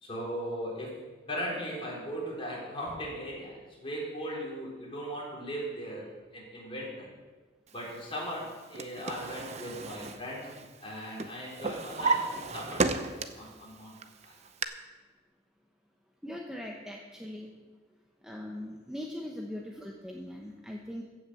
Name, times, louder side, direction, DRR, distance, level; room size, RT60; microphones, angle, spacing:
voice 1, 0.0-1.0 1.3-7.1 7.7-10.5 10.8-12.9 13.1-13.9 14.2-14.3, equal, 30° left, -4 dB, 4.3 m, -38 dB
Drawer open or close, 8.4-10.9 11.2-13.5 14.0-14.6, right 3 dB, 35° right, 0.7 m, -33 dB
voice 2, 16.2-17.5 18.2-21.0, left 1 dB, 5° right, 0 dB, 0.9 m, -40 dB
15.5 x 6.5 x 7.6 m, 1.4 s
head